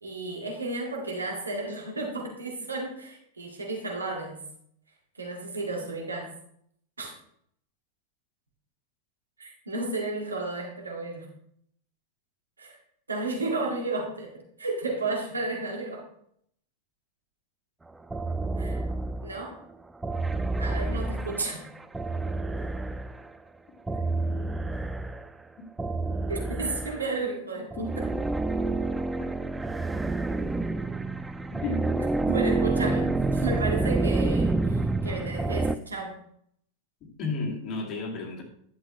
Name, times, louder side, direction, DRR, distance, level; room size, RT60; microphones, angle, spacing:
voice 1, 0.0-4.4 5.2-6.3 7.0-7.1 9.4-11.3 12.6-12.8 13.1-14.3 14.6-16.0 18.6-18.8 19.2-19.6 20.6-21.6 26.3-27.8 32.3-36.1, right 2 dB, 75° right, 0 dB, 2.0 m, -32 dB
sound 1, 18.1-19.4 20.0-23.3 23.9-25.3 25.8-27.2 27.7-35.8, right 2 dB, 10° right, 0.4 m, -28 dB
voice 2, 28.9-29.3 31.6-31.8 37.2-38.4, left 3 dB, 30° left, -1 dB, 2.4 m, -32 dB
11.0 x 7.3 x 3.2 m, 0.68 s
figure-of-eight pair, 90°, 0 cm